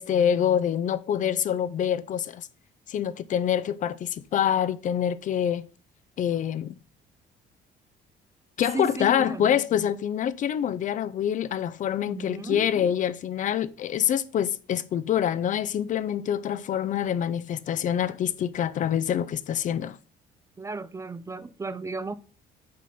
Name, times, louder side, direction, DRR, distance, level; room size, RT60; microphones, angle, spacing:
voice 1, 0.0-2.5 2.9-5.6 6.2-6.8 8.6-20.0, left 9 dB, 50° left, 0.5 m, -26 dB
voice 2, 8.7-9.5 12.0-12.7 20.6-22.1, right 3 dB, 20° right, 0.3 m, -35 dB
6.1 x 4.3 x 5.5 m
cardioid pair, 110°, 17 cm